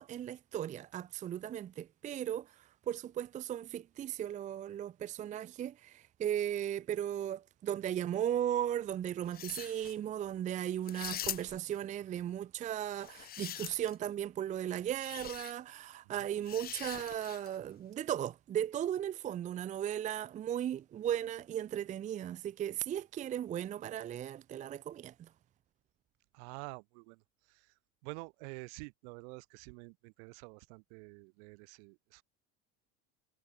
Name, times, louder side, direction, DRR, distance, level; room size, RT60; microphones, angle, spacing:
voice 1, 0.0-25.3, right 10 dB, 20° right, 0.6 m, -36 dB
sound 1, 9.2-10.0 10.9-11.7 12.9-14.1 15.0-15.5 16.5-17.6, left 12 dB, 25° left, 1.0 m, -43 dB
voice 2, 26.3-27.7 28.0-32.2, right 33 dB, 70° right, 6.0 m, -49 dB
cardioid pair, 175°, 36 cm